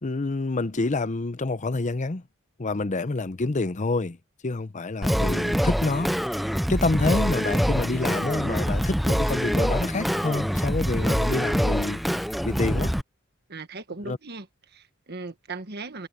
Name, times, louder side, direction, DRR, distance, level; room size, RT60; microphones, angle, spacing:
voice 1, 0.0-2.2 2.6-4.2 4.4-12.0 12.4-12.9 14.0-14.2, left 3 dB, 35° left, 0.7 m, -27 dB
Singing, 5.0-13.0, equal, ahead, 0.4 m, -25 dB
voice 2, 13.5-16.1, right 3 dB, 55° right, 1.5 m, -38 dB
head